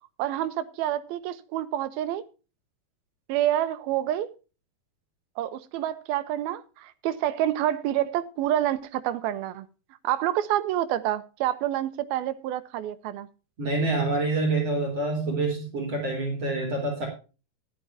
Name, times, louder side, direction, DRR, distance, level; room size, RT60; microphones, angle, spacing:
voice 1, 0.2-2.2 3.3-4.3 5.4-9.7 10.0-13.3, right 12 dB, 90° right, 2.8 m, -28 dB
voice 2, 13.6-17.1, right 2 dB, 40° right, 4.7 m, -26 dB
14.5 x 12.5 x 2.7 m
omnidirectional pair, 4.3 m